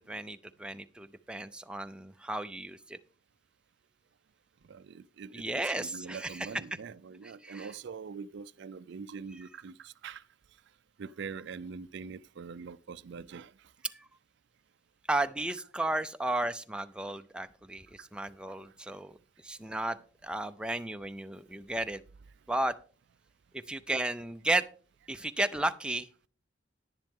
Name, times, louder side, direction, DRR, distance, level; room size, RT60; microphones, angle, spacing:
voice 1, 0.1-3.0 5.3-6.5 7.4-7.7 13.8-14.1 15.1-19.1 19.4-20.0 20.2-22.0 22.5-22.7 23.7-24.6 25.1-26.1, right 2 dB, 5° right, 0.4 m, -33 dB
voice 2, 4.6-10.2 11.0-13.5 18.5-18.6, right 5 dB, 65° right, 0.4 m, -43 dB
10.5 x 10.5 x 3.6 m
head